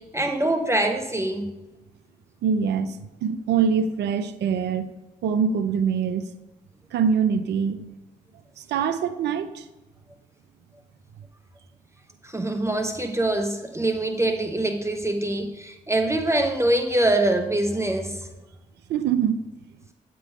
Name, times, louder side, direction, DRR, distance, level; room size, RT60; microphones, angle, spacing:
voice 1, 0.0-1.5 12.2-18.3, right 1 dB, 15° right, 5 dB, 0.9 m, -24 dB
voice 2, 2.4-4.9 5.2-6.2 6.9-7.8 8.7-9.6 18.9-19.4, right 7 dB, 80° right, 11 dB, 0.6 m, -24 dB
9.1 x 3.8 x 5.1 m, 1.0 s
supercardioid pair, 45°, 17 cm